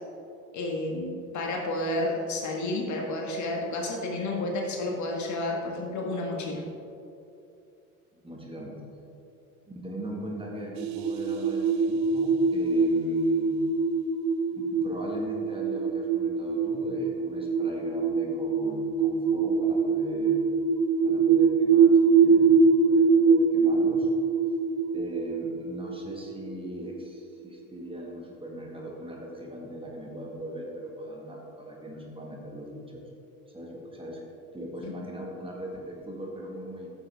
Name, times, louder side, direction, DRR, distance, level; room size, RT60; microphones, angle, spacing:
voice 1, 0.5-6.6 34.8-34.9, left 2 dB, 45° left, 0 dB, 1.6 m, -31 dB
voice 2, 8.1-8.8 9.7-13.6 14.5-20.4 21.0-24.1 24.9-33.0 33.5-34.2 34.5-36.9, right 1 dB, 10° right, -2 dB, 1.8 m, -39 dB
sound 1, 10.8-27.1, right 5 dB, 45° right, 0.7 m, -24 dB
9.7 x 7.1 x 3.6 m, 2.7 s
hypercardioid pair, 80°, 42 cm